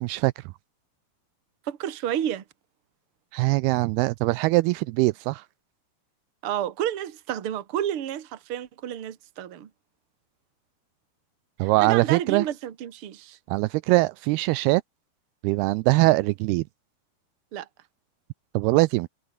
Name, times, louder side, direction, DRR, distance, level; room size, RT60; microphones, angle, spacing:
voice 1, 0.0-0.4 3.3-5.4 11.6-12.5 13.5-14.8 15.4-16.6 18.5-19.1, right 21 dB, 80° right, 2.4 m, -22 dB
voice 2, 1.7-2.4 6.4-9.7 11.6-13.4 17.5-17.7, right 10 dB, 45° right, 2.0 m, -30 dB
omnidirectional pair, 4.7 m